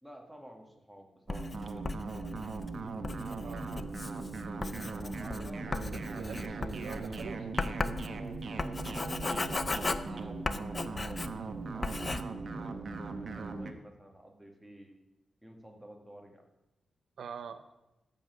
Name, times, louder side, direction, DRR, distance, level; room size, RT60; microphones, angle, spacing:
voice 1, 0.0-2.6 4.7-6.6 9.3-15.0 15.4-16.4, equal, ahead, 1 dB, 1.7 m, -52 dB
Writing, 1.3-11.5 11.8-12.2, left 3 dB, 25° left, 0.5 m, -37 dB
sound 1, 1.3-13.7, right 3 dB, 55° right, 0.9 m, -39 dB
voice 2, 3.4-3.8 5.9-7.5 17.2-17.6, right 6 dB, 80° right, 11 dB, 0.6 m, -44 dB
14.0 x 5.5 x 6.2 m, 0.96 s
wide cardioid pair, 125°, 0 cm